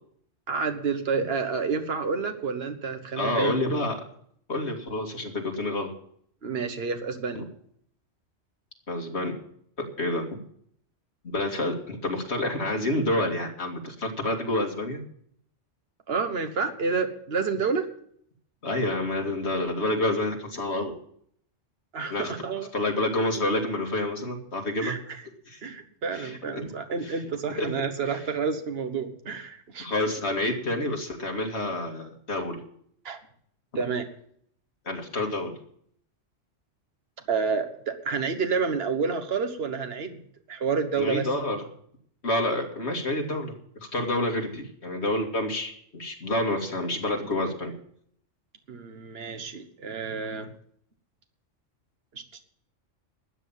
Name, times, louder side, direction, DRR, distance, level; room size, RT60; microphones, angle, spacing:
voice 1, 0.5-3.6 6.4-7.4 16.1-17.9 21.9-22.7 24.8-25.2 25.6-29.9 33.0-33.2 33.7-34.1 37.3-41.3 48.7-50.5 52.1-52.2, right 5 dB, 55° right, 7 dB, 1.5 m, -29 dB
voice 2, 3.2-4.0 4.5-5.9 8.9-9.3 9.8-10.4 11.2-15.0 18.6-20.9 22.1-22.3 22.7-24.9 25.5-25.6 26.1-26.7 27.0-27.1 27.6-27.7 29.8-32.6 34.9-35.6 41.0-41.6 42.2-43.5 43.9-47.7, left 1 dB, 60° left, 1 dB, 2.6 m, -28 dB
13.0 x 8.8 x 7.2 m, 0.64 s
omnidirectional pair, 1.2 m